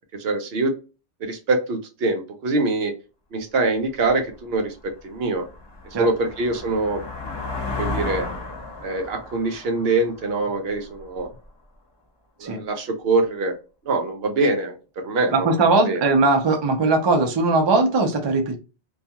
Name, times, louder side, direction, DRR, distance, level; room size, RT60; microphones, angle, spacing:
voice 1, 0.1-0.7 1.2-2.9 3.3-5.5 6.0-7.0 7.7-8.3 8.8-11.3 12.4-13.5 13.9-15.6 15.9-16.0, right 3 dB, 70° right, 5 dB, 0.8 m, -24 dB
sound 1, 4.1-4.2 4.7-11.2, left 3 dB, 25° left, 0.9 m, -34 dB
voice 2, 15.3-18.6, right 3 dB, 35° right, 3 dB, 0.4 m, -19 dB
2.3 x 2.3 x 2.8 m, 0.32 s
omnidirectional pair, 1.1 m